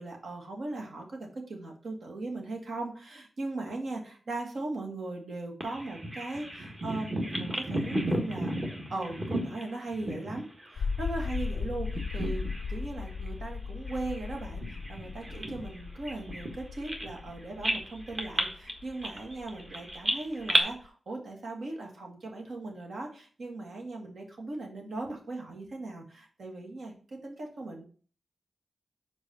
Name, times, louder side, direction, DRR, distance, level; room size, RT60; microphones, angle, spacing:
voice 1, 0.0-8.5 8.9-27.8, right 2 dB, 75° right, 1 dB, 1.9 m, -38 dB
Bird vocalization bird call bird song, 5.6-11.6 11.8-12.8 13.1-13.3 13.9-17.3 17.6-20.6, right 1 dB, 30° right, 1.4 m, -33 dB
sound 1, 10.8-20.9, left 5 dB, 75° left, 0.4 m, -37 dB
5.0 x 4.6 x 5.6 m, 0.41 s
wide cardioid pair, 110°, 0 cm